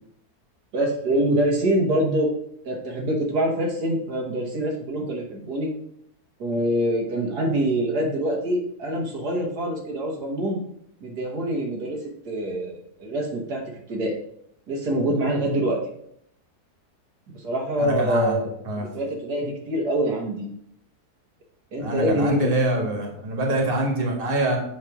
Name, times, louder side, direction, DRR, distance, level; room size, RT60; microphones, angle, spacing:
voice 1, 0.7-2.3 2.6-5.7 6.4-10.6 11.0-12.0 12.3-13.6 13.9-14.1 14.7-15.8 17.3-18.5 18.8-20.5 21.7-22.5, right 1 dB, 80° right, 0 dB, 1.8 m, -25 dB
voice 2, 17.8-18.4 18.6-18.9 21.8-24.6, right 1 dB, 35° right, 1 dB, 1.6 m, -24 dB
8.1 x 3.2 x 5.9 m, 0.70 s
omnidirectional pair, 1.7 m